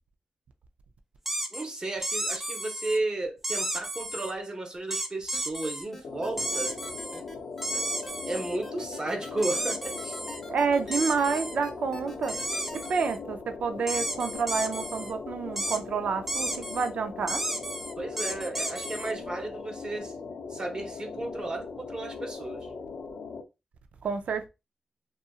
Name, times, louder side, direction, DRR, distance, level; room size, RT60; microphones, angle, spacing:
sound 1, 1.3-1.6 2.0-3.0 3.4-4.3 4.9-5.9 6.4-7.2 7.6-8.6 9.4-10.4 10.9-11.6 12.3-13.2 13.9-15.1 15.6-15.8 16.3-16.9 17.3-19.1, right 1 dB, 10° right, 0.4 m, -33 dB
voice 1, 1.5-6.8 8.3-10.2 18.0-20.1 20.5-22.7, right 2 dB, 35° right, 0.8 m, -34 dB
sound 2, 5.3-12.9, left 1 dB, 5° left, 0.9 m, -45 dB
sound 3, 6.0-23.4, left 4 dB, 80° left, 0.4 m, -40 dB
voice 2, 10.5-12.4 12.7-17.4 24.0-24.5, right 5 dB, 75° right, 0.4 m, -29 dB
2.7 x 2.4 x 2.3 m
cardioid pair, 60°, 2 cm